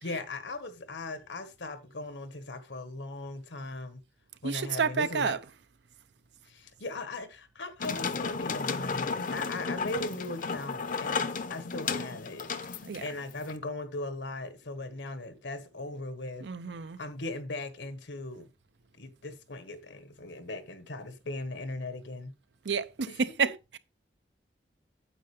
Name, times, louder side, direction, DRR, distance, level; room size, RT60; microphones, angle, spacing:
voice 1, 0.0-4.0 4.4-5.4 6.4-12.5 13.0-16.5 17.0-18.5 19.0-22.3 23.1-23.2, left 2 dB, 80° left, 1.4 m, -39 dB
voice 2, 4.4-5.4 12.9-13.0 16.4-17.0 22.6-23.8, right 5 dB, 70° right, 0.6 m, -30 dB
sound 1, 7.8-13.5, left 4 dB, 50° left, 0.7 m, -33 dB
9.1 x 7.7 x 3.3 m
head